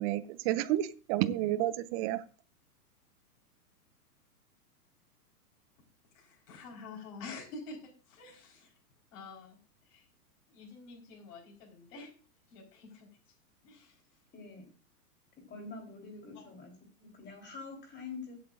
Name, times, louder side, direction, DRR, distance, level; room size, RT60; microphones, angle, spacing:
voice 1, 0.0-2.2, right 14 dB, 40° right, 13 dB, 1.0 m, -30 dB
voice 2, 6.1-8.7 9.1-10.1 10.5-12.1 12.5-13.1 13.6-14.0 16.3-16.5, left 3 dB, 55° left, -3 dB, 4.7 m, -48 dB
voice 3, 14.3-14.6 15.5-18.4, left 4 dB, 20° left, 2 dB, 3.8 m, -46 dB
24.0 x 8.3 x 2.6 m, 0.36 s
hypercardioid pair, 115°, 47 cm